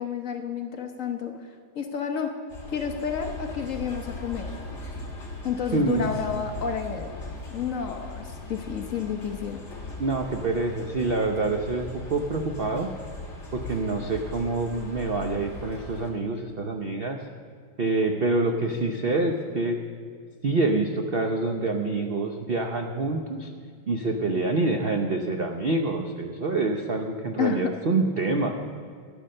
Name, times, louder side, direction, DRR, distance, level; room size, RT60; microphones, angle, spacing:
voice 1, 0.0-2.3 2.7-4.5 5.4-7.1 7.5-9.6 27.4-27.7, left 7 dB, 55° left, 4 dB, 1.1 m, -30 dB
sound 1, 2.5-16.1, left 2 dB, 35° left, 2.2 m, -39 dB
voice 2, 5.7-6.1 10.0-12.9 13.5-17.2 17.8-19.8 20.4-23.5 23.9-28.5, right 3 dB, 70° right, 3 dB, 0.5 m, -26 dB
12.5 x 9.0 x 6.5 m, 2.1 s
omnidirectional pair, 2.0 m